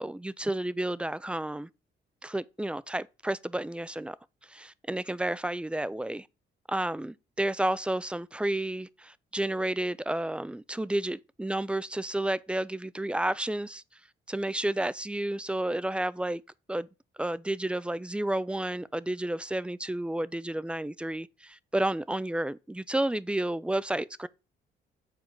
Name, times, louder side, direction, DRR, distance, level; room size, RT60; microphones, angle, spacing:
voice 1, 0.0-1.7 2.2-4.2 4.5-6.3 6.7-13.8 14.3-16.4 16.7-16.9 17.2-24.3, right 1 dB, 5° right, 0.3 m, -31 dB
7.4 x 4.4 x 3.7 m
cardioid pair, 90°, 20 cm